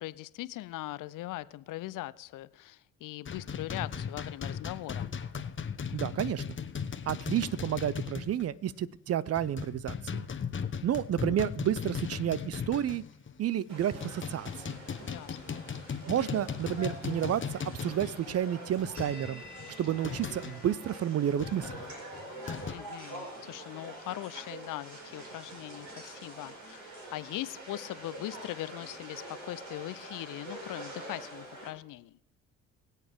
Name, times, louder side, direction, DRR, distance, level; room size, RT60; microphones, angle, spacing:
voice 1, 0.0-5.1 15.1-15.6 22.7-26.8 27.1-32.2, left 16 dB, 55° left, 18 dB, 0.6 m, -40 dB
sound 1, 3.3-8.5 8.8-8.9 9.3-13.3 13.8-20.6 21.4-22.7, left 6 dB, 30° left, 1.2 m, -38 dB
voice 2, 5.9-6.4 7.1-10.3 10.8-13.0 13.4-14.7 16.1-19.4 19.8-21.7, right 10 dB, 40° right, 19 dB, 0.6 m, -31 dB
sound 2, 13.7-31.7, right 1 dB, 60° right, 4.3 m, -45 dB
22.5 x 8.2 x 3.6 m, 0.75 s
hypercardioid pair, 50°, 39 cm